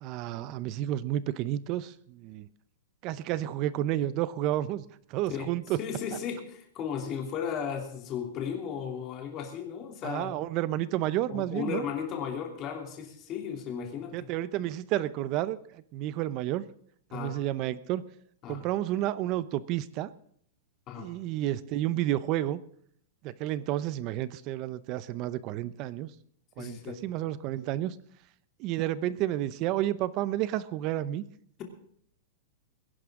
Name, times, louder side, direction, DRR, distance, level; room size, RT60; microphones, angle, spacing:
voice 1, 0.0-2.5 3.0-4.8 5.1-5.8 10.0-11.8 14.1-16.6 17.1-18.0 18.5-20.1 21.0-22.6 23.2-26.1 26.6-27.9 28.6-31.2, right 13 dB, 30° right, 17 dB, 0.7 m, -31 dB
voice 2, 5.8-10.3 11.3-14.3 17.1-17.4 18.4-18.6 20.9-21.1 26.6-27.0, left 7 dB, 25° left, 3 dB, 2.9 m, -35 dB
22.0 x 11.0 x 3.7 m, 0.64 s
supercardioid pair, 170°, 0 cm